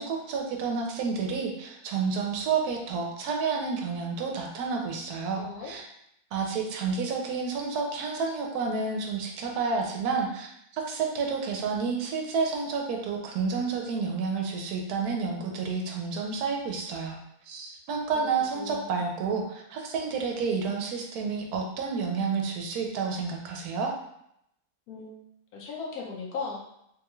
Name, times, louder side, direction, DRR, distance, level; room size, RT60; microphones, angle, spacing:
voice 1, 0.0-5.8 6.3-17.2 17.5-23.9, right 5 dB, 85° right, 1 dB, 1.1 m, -30 dB
voice 2, 5.3-5.8 18.1-18.2 18.5-19.0 24.9-25.2 25.5-26.6, left 4 dB, 75° left, -2 dB, 1.1 m, -37 dB
3.4 x 2.3 x 3.0 m, 0.76 s
omnidirectional pair, 1.6 m